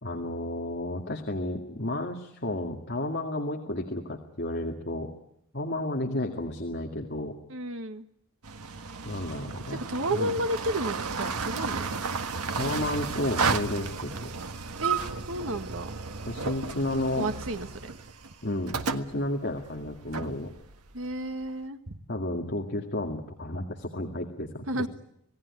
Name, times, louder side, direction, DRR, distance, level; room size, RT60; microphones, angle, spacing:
voice 1, 0.0-5.1 5.5-7.3 9.0-9.8 10.1-10.3 12.5-14.3 16.3-17.3 18.4-20.5 22.1-24.9, left 1 dB, 50° left, 2 dB, 2.1 m, -32 dB
voice 2, 7.5-8.0 9.9-11.9 14.8-15.0 15.3-15.9 17.2-17.9 20.9-22.0 24.7-24.9, right 1 dB, 65° right, 8 dB, 1.8 m, -32 dB
sound 1, 8.4-21.4, right 5 dB, 90° right, 1.6 m, -33 dB
27.5 x 18.0 x 9.8 m, 0.79 s
head